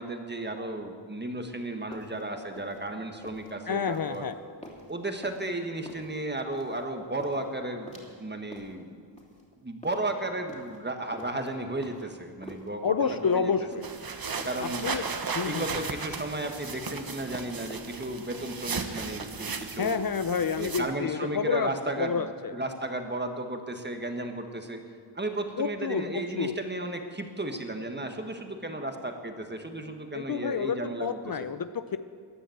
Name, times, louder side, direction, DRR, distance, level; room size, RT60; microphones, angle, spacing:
voice 1, 0.0-4.3 4.9-9.0 9.6-13.5 14.4-14.9 15.4-20.0 20.6-24.8 25.1-31.5, right 2 dB, 25° right, 5 dB, 1.6 m, -34 dB
sound 1, 1.7-19.7, left 1 dB, 15° left, 3.2 m, -49 dB
voice 2, 3.7-4.3 12.8-13.9 14.6-15.1 15.3-15.8 19.8-21.7 22.0-22.5 25.6-26.5 30.1-32.0, left 6 dB, 50° left, 11 dB, 0.6 m, -29 dB
sound 2, 13.8-20.8, right 5 dB, 50° right, 1.2 m, -36 dB
15.0 x 10.0 x 7.9 m, 2.1 s
wide cardioid pair, 70°, 45 cm